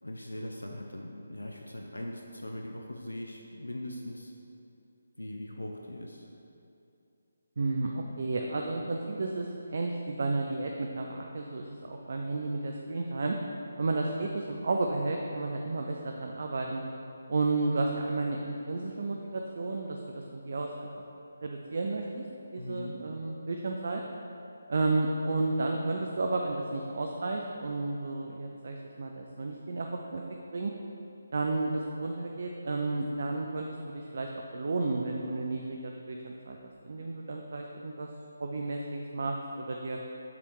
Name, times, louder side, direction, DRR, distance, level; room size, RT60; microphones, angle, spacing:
voice 1, 0.0-4.3 5.2-6.3 22.6-23.0, left 1 dB, 80° left, 1 dB, 0.5 m, -40 dB
voice 2, 7.6-13.4 13.8-16.8 17.3-21.0 21.4-22.2 22.5-24.0 24.7-30.2 30.5-30.7 31.3-36.6 36.8-38.1 38.4-40.0, right 3 dB, 50° right, 1 dB, 0.4 m, -32 dB
6.9 x 3.4 x 4.7 m, 2.8 s
figure-of-eight pair, 150°, 0 cm